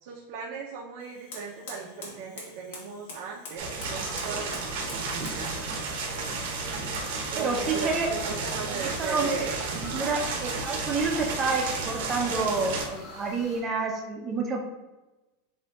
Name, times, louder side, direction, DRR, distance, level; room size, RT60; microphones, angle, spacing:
voice 1, 0.0-5.6 7.3-9.6 10.0-10.2, right 6 dB, 55° right, -3 dB, 0.6 m, -37 dB
Fire, 1.0-11.5, left 3 dB, 70° left, 1.3 m, -49 dB
sound 1, 3.6-12.8, right 4 dB, 80° right, 1.0 m, -32 dB
sound 2, 3.9-13.6, left 2 dB, 30° left, 1.2 m, -47 dB
voice 2, 7.4-8.1 8.7-9.3 9.7-14.6, right 4 dB, 20° right, 1 dB, 0.6 m, -29 dB
7.5 x 2.7 x 2.4 m, 1.1 s
supercardioid pair, 165°, 0 cm